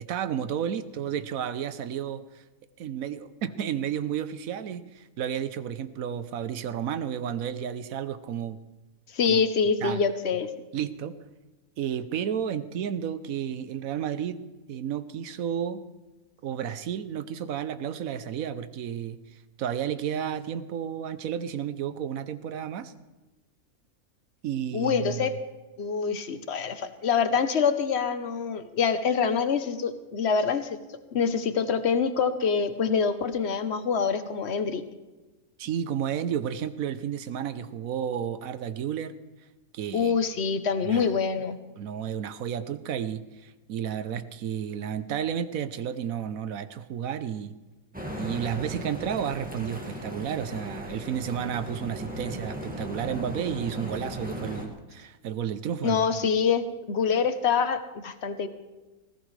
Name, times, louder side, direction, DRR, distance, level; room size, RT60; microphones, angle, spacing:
voice 1, 0.0-2.2 2.8-8.6 9.3-9.4 9.8-10.0 10.7-11.2 11.8-15.8 16.4-19.2 19.6-22.9 24.4-25.3 35.6-39.2 39.7-40.2 40.8-41.2 41.8-47.6 48.2-56.1, right 9 dB, 70° right, 13 dB, 1.1 m, -32 dB
voice 2, 9.1-10.5 24.7-25.3 25.8-30.8 31.1-34.8 39.9-41.6 55.8-58.5, left 6 dB, 50° left, 10 dB, 1.1 m, -25 dB
sound 1, 47.9-54.7, equal, 5° right, 1.9 m, -37 dB
19.5 x 16.0 x 3.3 m, 1.1 s
omnidirectional pair, 1.6 m